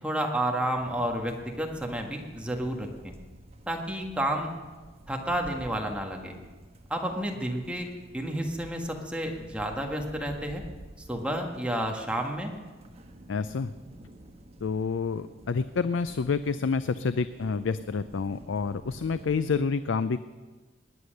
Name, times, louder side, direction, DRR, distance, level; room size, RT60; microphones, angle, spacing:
voice 1, 0.0-3.1 3.7-4.5 5.1-6.3 6.9-7.9 8.1-10.6 11.1-12.5, right 1 dB, 5° right, 1 dB, 1.6 m, -31 dB
sound 1, 0.8-19.6, right 1 dB, 35° right, 1.2 m, -50 dB
voice 2, 13.3-13.7 14.6-20.2, left 5 dB, 70° left, 13 dB, 0.4 m, -28 dB
20.0 x 9.7 x 6.5 m, 1.3 s
head